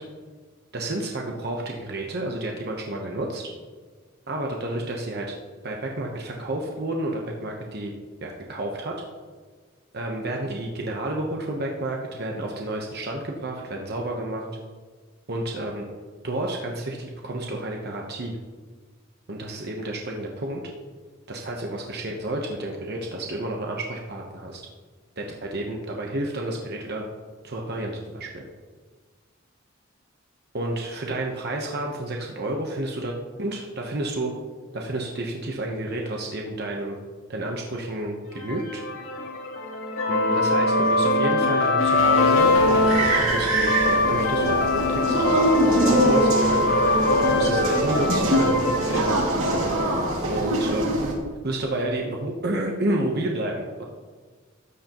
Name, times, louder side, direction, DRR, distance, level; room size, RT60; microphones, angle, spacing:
voice 1, 0.7-3.5 4.3-5.3 5.6-7.9 8.2-8.9 9.9-14.5 15.3-15.9 16.2-18.4 19.3-20.6 21.3-24.6 25.2-27.1 27.4-28.5 30.5-33.1 33.4-34.3 34.7-37.0 37.3-38.8 40.1-45.1 45.6-46.7 47.2-49.2 50.2-51.0 51.4-53.8, right 1 dB, 50° right, 0 dB, 1.0 m, -30 dB
sound 1, 38.4-50.2, left 2 dB, 70° left, 2.0 m, -23 dB
sound 2, 42.3-51.1, right 1 dB, 80° right, 2.3 m, -23 dB
13.5 x 9.4 x 3.0 m, 1.5 s
head